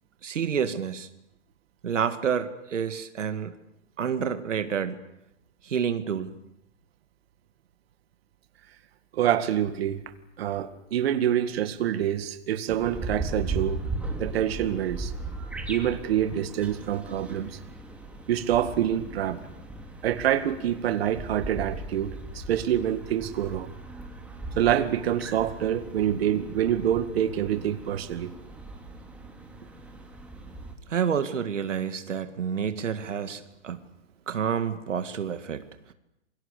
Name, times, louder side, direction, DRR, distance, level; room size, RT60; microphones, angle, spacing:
voice 1, 0.2-1.1 1.8-3.5 4.0-5.0 5.6-6.3 30.9-33.8 34.3-35.6, right 7 dB, 75° right, 2.1 m, -29 dB
voice 2, 9.1-10.0 10.4-13.8 14.2-15.1 15.7-17.6 18.3-19.4 20.0-23.7 24.6-28.3, right 10 dB, 55° right, 2.1 m, -26 dB
sound 1, 12.7-30.8, right 2 dB, 5° right, 2.9 m, -38 dB
28.0 x 24.5 x 6.8 m
hypercardioid pair, 140°, 37 cm